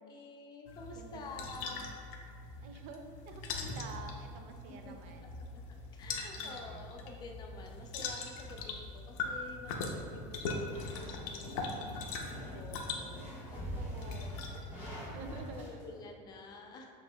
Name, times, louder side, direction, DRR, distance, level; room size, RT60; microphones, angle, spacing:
voice 1, 0.0-2.0 4.7-5.0 5.5-5.6 5.9-14.3 14.6-15.0 15.4-16.9, left 3 dB, 25° left, 2 dB, 0.3 m, -50 dB
sound 1, 0.7-15.5, left 3 dB, 80° left, 0.6 m, -42 dB
voice 2, 1.0-2.0 2.6-5.2 6.3-7.1 11.6-12.0 12.8-13.2 13.5-14.3 15.1-15.8, right 4 dB, 45° right, 5 dB, 0.4 m, -50 dB
sound 2, 10.7-15.8, equal, 10° right, 1.3 m, -44 dB
6.2 x 3.0 x 2.2 m, 2.3 s
cardioid pair, 160°, 17 cm